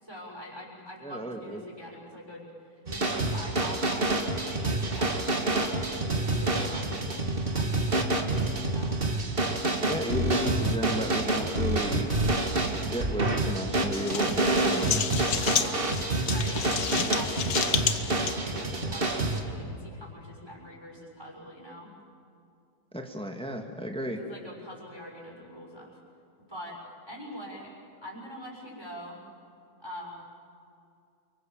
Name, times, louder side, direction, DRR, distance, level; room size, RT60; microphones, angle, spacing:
voice 1, 0.0-9.0 14.1-16.0 16.3-21.9 24.1-26.0 26.4-27.7 28.0-29.2 29.8-30.2, equal, 15° right, -1 dB, 6.3 m, -44 dB
voice 2, 1.0-1.6 9.8-12.1 12.8-15.0 22.9-24.2, equal, 5° left, 3 dB, 1.9 m, -33 dB
sound 1, 2.9-19.4, right 2 dB, 35° right, 2.1 m, -28 dB
sound 2, 13.9-18.3, left 8 dB, 70° left, 1.6 m, -30 dB
28.5 x 25.0 x 7.4 m, 2.5 s
omnidirectional pair, 1.7 m